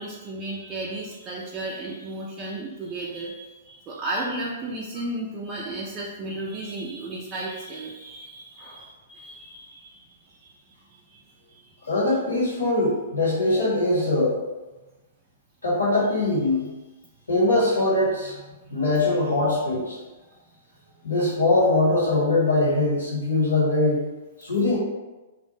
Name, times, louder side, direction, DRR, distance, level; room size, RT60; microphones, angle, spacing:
voice 1, 0.0-10.6 10.9-11.8 20.3-20.4, right 2 dB, 25° right, -4 dB, 0.3 m, -34 dB
voice 2, 11.9-14.4 15.6-16.7 17.3-18.4 18.7-20.0 21.0-24.0 24.4-24.8, left 2 dB, 75° left, -8 dB, 1.2 m, -22 dB
2.6 x 2.0 x 2.9 m, 1.1 s
figure-of-eight pair, 110°, 0 cm